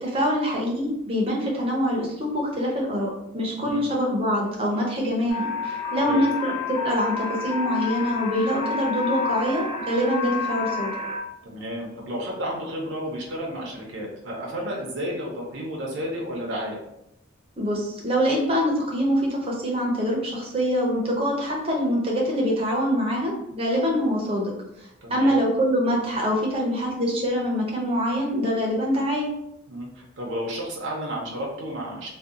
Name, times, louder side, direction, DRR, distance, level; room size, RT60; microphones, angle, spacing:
voice 1, 0.0-10.9 17.6-24.5 25.1-29.3, equal, 30° right, -2 dB, 0.6 m, -24 dB
sound 1, 5.3-11.2, left 5 dB, 65° left, 0.6 m, -29 dB
voice 2, 11.4-16.8 25.0-25.4 29.7-32.1, equal, 70° right, -2 dB, 0.6 m, -32 dB
2.6 x 2.2 x 2.4 m, 0.81 s
head